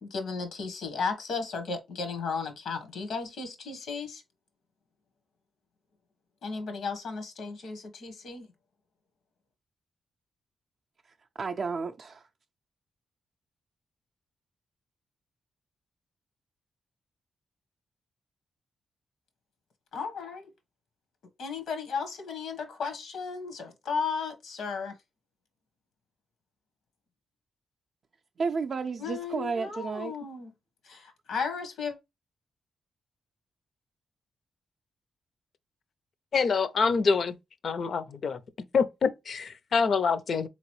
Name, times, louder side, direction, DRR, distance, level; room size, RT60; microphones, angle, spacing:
voice 1, 0.0-4.2 6.4-8.5 19.9-20.5 21.4-24.9 29.0-30.5 30.8-32.0, left 5 dB, 85° left, 1.1 m, -34 dB
voice 2, 11.4-12.3 28.4-30.1, right 5 dB, 55° right, 0.3 m, -32 dB
voice 3, 36.3-37.4 37.6-38.4 38.7-40.5, left 5 dB, 60° left, 0.5 m, -26 dB
3.9 x 2.9 x 3.0 m
cardioid pair, 85°, 0 cm